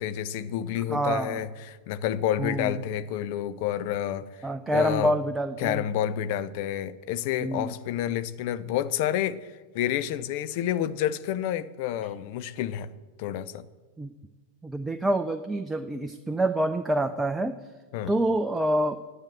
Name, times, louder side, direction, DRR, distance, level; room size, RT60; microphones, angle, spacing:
voice 1, 0.0-5.1 5.6-12.9 13.2-13.6 17.9-18.1, left 11 dB, 50° left, 0.6 m, -29 dB
voice 2, 0.9-1.4 2.4-2.8 4.4-5.8 7.4-7.7 14.0-14.1 14.6-17.5 18.1-19.0, right 1 dB, 10° right, 0.5 m, -27 dB
10.5 x 8.1 x 7.9 m
figure-of-eight pair, 90°, 0 cm